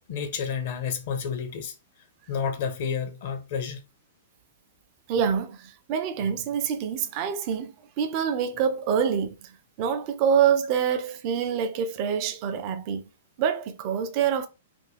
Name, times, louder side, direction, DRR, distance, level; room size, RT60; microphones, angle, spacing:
voice 1, 0.1-1.7 2.3-3.8, left 6 dB, 45° left, 0.6 m, -30 dB
voice 2, 5.1-9.5 9.8-13.1 13.4-14.5, right 7 dB, 35° right, 0.4 m, -26 dB
2.5 x 2.2 x 3.2 m
figure-of-eight pair, 105°, 0 cm